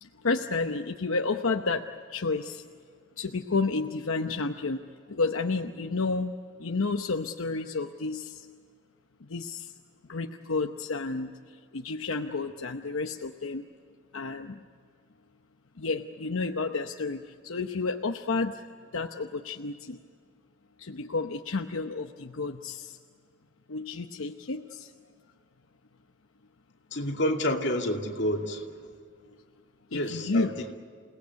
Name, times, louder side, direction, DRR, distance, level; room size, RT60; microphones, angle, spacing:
voice 1, 0.0-1.8 2.1-2.6 3.2-6.3 6.6-8.5 9.3-9.7 10.1-11.3 11.7-13.6 14.1-14.6 15.8-18.6 18.9-20.0 20.8-23.0 23.7-24.9 29.9-30.5, left 3 dB, 85° left, 5 dB, 0.9 m, -31 dB
voice 2, 26.9-28.7 29.9-30.5, left 1 dB, 55° left, 1 dB, 2.5 m, -28 dB
28.5 x 18.5 x 9.5 m, 2.1 s
head